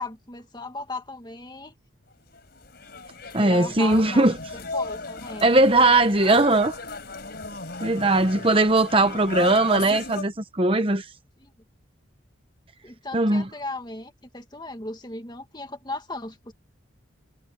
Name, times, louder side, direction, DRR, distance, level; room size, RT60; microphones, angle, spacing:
voice 1, 0.0-1.7 3.0-4.3 4.5-5.5 6.2-6.4 9.3-9.4 11.4-11.5 12.8-16.5, left 2 dB, 20° left, 2.0 m, -37 dB
sound 1, 2.2-10.2, left 3 dB, 55° left, 4.7 m, -36 dB
voice 2, 3.3-4.3 5.4-6.7 7.8-11.0 13.1-13.4, right 2 dB, 30° right, 1.0 m, -19 dB
head